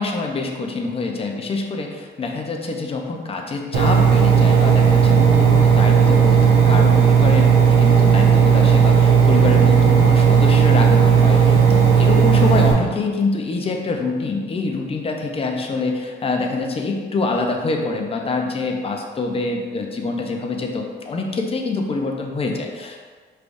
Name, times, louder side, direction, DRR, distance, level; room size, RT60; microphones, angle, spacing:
voice 1, 0.0-23.0, left 3 dB, 30° left, 2 dB, 0.6 m, -25 dB
Engine, 3.7-12.7, right 7 dB, 80° right, 0.9 m, -14 dB
4.8 x 3.3 x 2.6 m, 1.5 s
cardioid pair, 90°, 20 cm